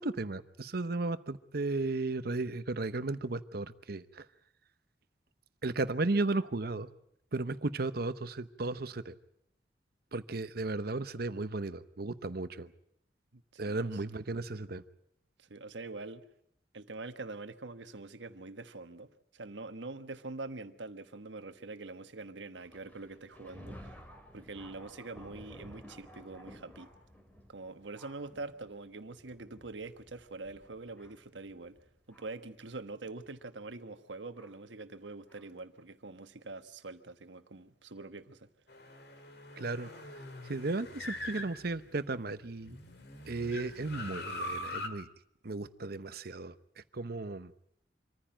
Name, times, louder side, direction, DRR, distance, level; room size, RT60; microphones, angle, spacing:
voice 1, 0.0-4.2 5.6-6.9 7.3-9.1 10.1-12.7 13.6-14.8 39.6-39.9 40.4-42.8 43.2-45.1 45.4-47.5, right 2 dB, 60° right, 0.9 m, -35 dB
voice 2, 13.3-13.9 15.4-16.2 16.7-24.0 24.3-26.9 27.5-31.8 32.1-38.5, right 3 dB, 85° right, 1.3 m, -44 dB
Thunder, 22.6-32.5 33.3-33.4 34.4-34.5 35.3-35.4, equal, 10° left, 2.7 m, -54 dB
sound 1, 38.7-42.2 42.7-44.9, left 1 dB, 65° left, 2.2 m, -42 dB
25.5 x 15.0 x 8.9 m
head